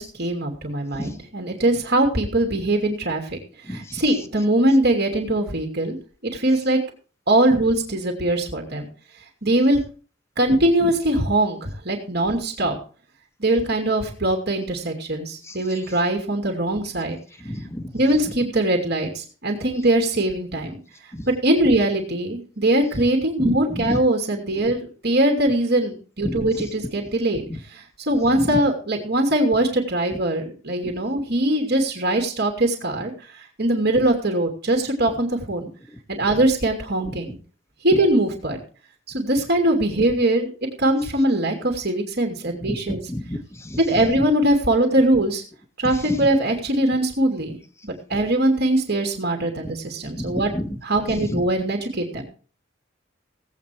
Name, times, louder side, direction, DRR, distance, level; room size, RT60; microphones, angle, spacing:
voice 1, 0.0-3.2 3.7-6.0 6.2-6.8 7.3-8.9 9.4-9.8 10.4-12.8 13.4-17.2 17.9-20.8 21.3-27.4 27.7-33.1 33.6-35.7 36.1-37.4 37.8-38.6 39.1-40.5 40.8-43.0 43.9-45.4 45.8-47.6 47.8-50.5 50.8-52.2, right 1 dB, 55° right, 3 dB, 2.9 m, -21 dB
voice 2, 3.6-4.0 15.4-16.0 17.4-17.9 18.3-18.4 21.1-21.3 23.4-24.0 26.2-26.7 27.5-27.6 28.3-28.6 30.8-30.9 36.2-36.3 37.0-37.2 42.6-44.3 45.8-46.3 49.6-49.7 50.1-50.8 51.1-51.4, equal, 15° left, 8 dB, 1.3 m, -31 dB
17.5 x 8.7 x 4.7 m, 0.38 s
head